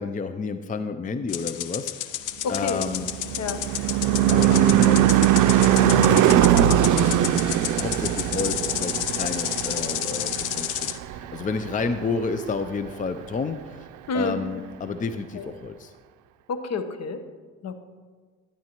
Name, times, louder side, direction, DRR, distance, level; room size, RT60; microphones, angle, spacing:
voice 1, 0.0-2.1 2.5-3.1 4.3-7.1 7.5-13.9 14.1-15.9, left 4 dB, 25° left, 9 dB, 0.5 m, -31 dB
sound 1, 1.3-11.0, left 12 dB, 90° left, 0.6 m, -31 dB
voice 2, 2.4-2.8 3.4-3.6 14.1-14.4 15.3-15.4 16.5-17.2 17.6-17.8, left 4 dB, 60° left, 8 dB, 1.0 m, -28 dB
Car passing by / Truck / Engine, 2.7-11.4, right 12 dB, 80° right, 0.5 m, -21 dB
12.5 x 9.9 x 3.0 m, 1.5 s
cardioid pair, 90°, 30 cm